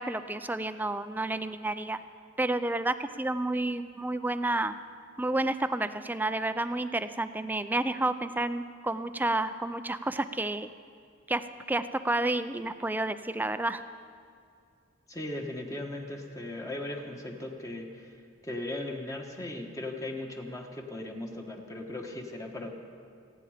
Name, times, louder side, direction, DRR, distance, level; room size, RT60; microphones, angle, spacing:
voice 1, 0.0-2.0 2.4-4.8 5.2-10.7 11.3-13.8, right 2 dB, 10° right, 11 dB, 0.4 m, -30 dB
voice 2, 15.1-18.2 18.4-22.7, left 1 dB, 15° left, 2 dB, 1.4 m, -38 dB
28.5 x 10.0 x 5.1 m, 2.3 s
head